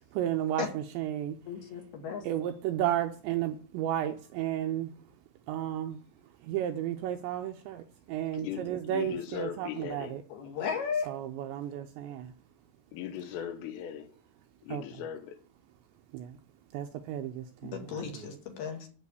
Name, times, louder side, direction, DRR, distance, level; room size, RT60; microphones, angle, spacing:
voice 1, 0.1-1.4 2.2-4.9 5.5-6.0 6.4-10.2 11.1-12.3 14.7-14.8 16.1-16.3 16.7-18.3, right 11 dB, 80° right, 2.7 m, -33 dB
voice 2, 1.5-2.2 10.3-11.1 17.7-18.9, left 6 dB, 60° left, 3.5 m, -35 dB
voice 3, 8.3-10.2 12.9-14.2 14.6-15.4, left 9 dB, 80° left, 3.7 m, -39 dB
11.0 x 6.3 x 8.3 m
omnidirectional pair, 5.8 m